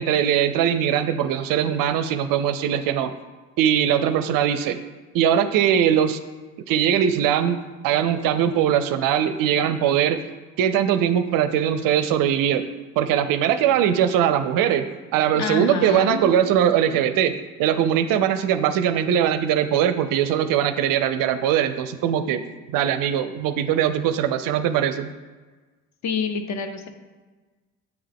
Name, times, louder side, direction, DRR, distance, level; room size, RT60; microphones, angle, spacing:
voice 1, 0.0-3.1 3.6-4.8 5.1-6.2 6.7-7.6 7.8-10.2 10.6-12.6 13.0-14.9 15.1-17.3 17.6-25.1, right 9 dB, 55° right, 11 dB, 0.5 m, -21 dB
voice 2, 15.3-16.2 26.0-26.9, left 5 dB, 40° left, 7 dB, 0.7 m, -27 dB
7.9 x 3.6 x 3.5 m, 1.3 s
hypercardioid pair, 60°, 41 cm